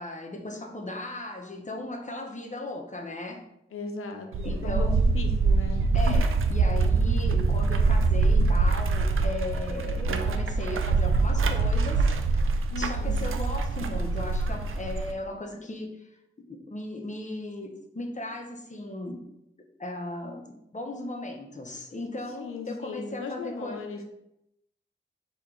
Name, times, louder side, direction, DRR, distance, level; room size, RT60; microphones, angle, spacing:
voice 1, 0.0-3.4 4.4-5.1 5.9-12.4 12.8-16.2 16.5-19.2 19.8-23.8, left 2 dB, 35° left, 2 dB, 0.9 m, -37 dB
voice 2, 3.7-6.2 12.7-13.3 22.4-24.0, left 4 dB, 90° left, 4 dB, 0.6 m, -37 dB
sound 1, 4.3-15.1, right 3 dB, 75° right, 0.4 m, -24 dB
4.4 x 3.0 x 3.8 m, 0.84 s
cardioid pair, 40°, 21 cm